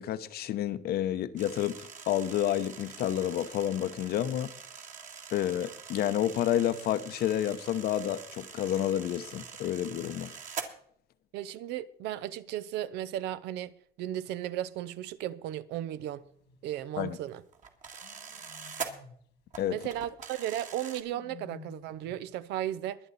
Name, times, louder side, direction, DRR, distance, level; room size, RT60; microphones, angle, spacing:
voice 1, 0.0-4.5 5.3-10.3 17.0-17.2 19.6-19.8, left 11 dB, 65° left, 0.9 m, -30 dB
sound 1, 1.4-10.7 14.4-14.5 14.8-15.0 16.7-18.9 19.5-21.0, right 6 dB, 50° right, 2.0 m, -44 dB
voice 2, 11.3-13.7 14.0-16.2 16.6-17.4 19.7-23.0, right 12 dB, 85° right, 0.8 m, -35 dB
sound 2, 15.8-16.7 18.0-19.3 20.7-22.3, left 6 dB, 85° left, 2.6 m, -53 dB
22.5 x 8.1 x 4.1 m
cardioid pair, 110°, 17 cm